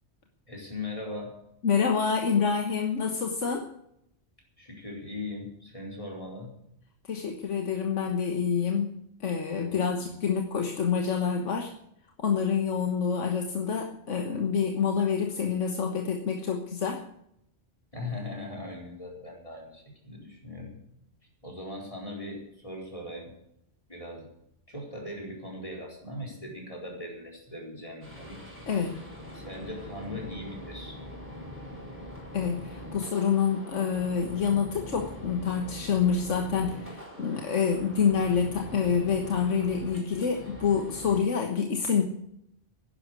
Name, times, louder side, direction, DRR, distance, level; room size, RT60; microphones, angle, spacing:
voice 1, 0.5-1.4 4.6-6.5 9.6-10.2 17.9-20.8 21.4-23.3 23.9-24.3 24.7-28.4 29.3-31.0, left 1 dB, 30° left, -1 dB, 4.5 m, -39 dB
voice 2, 1.6-3.7 7.0-9.0 9.2-11.7 12.2-17.0 28.7-28.9 32.3-42.0, left 6 dB, 90° left, 3 dB, 1.7 m, -27 dB
sound 1, 28.0-41.2, left 1 dB, 10° right, 5.2 m, -43 dB
11.5 x 11.0 x 8.2 m, 0.75 s
omnidirectional pair, 1.2 m